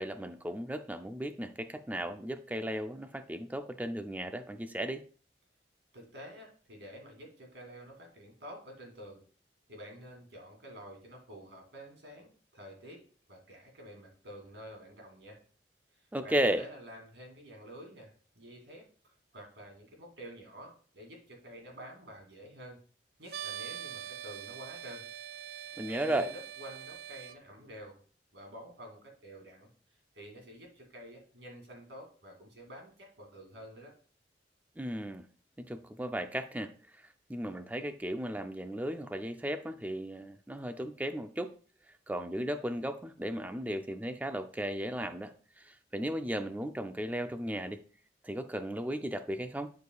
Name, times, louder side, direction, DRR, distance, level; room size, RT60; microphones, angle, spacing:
voice 1, 0.0-5.0 16.1-16.6 25.8-26.3 34.8-35.2 35.6-36.7 37.3-41.5 42.1-47.8 48.2-49.7, right 1 dB, 10° right, 8 dB, 0.4 m, -35 dB
voice 2, 5.9-9.2 9.7-15.4 16.0-22.8 23.2-25.0 25.6-28.0 28.3-29.7 30.1-33.9, equal, 85° right, 0 dB, 2.6 m, -49 dB
sound 1, 23.3-27.4, right 10 dB, 60° right, 0.5 m, -43 dB
10.5 x 4.7 x 2.3 m, 0.42 s
head